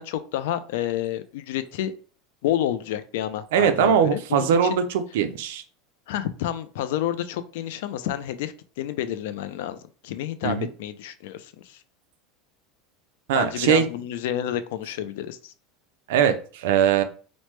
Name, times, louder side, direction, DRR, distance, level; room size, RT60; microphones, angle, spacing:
voice 1, 0.0-1.9 2.4-4.8 6.1-9.8 10.0-11.8 13.3-15.5, left 11 dB, 75° left, 12 dB, 0.3 m, -29 dB
voice 2, 3.5-5.6 10.4-10.7 13.3-13.9 16.1-17.0, right 8 dB, 75° right, 9 dB, 0.4 m, -21 dB
3.0 x 2.0 x 3.1 m, 0.40 s
supercardioid pair, 165°, 0 cm